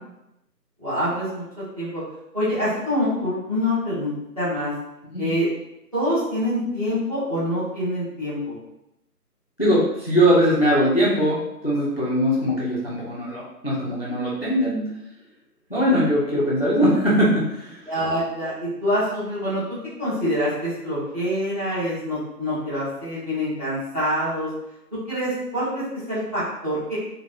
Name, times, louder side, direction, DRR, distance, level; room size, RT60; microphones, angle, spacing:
voice 1, 0.8-2.0 2.3-4.7 5.2-5.5 5.9-8.5 17.9-19.6 20.0-24.5 25.1-27.0, equal, 25° right, -12 dB, 0.9 m, -25 dB
voice 2, 9.6-14.9 15.7-17.9, equal, 40° left, -7 dB, 0.5 m, -21 dB
3.0 x 2.2 x 2.4 m, 0.87 s
figure-of-eight pair, 165°, 49 cm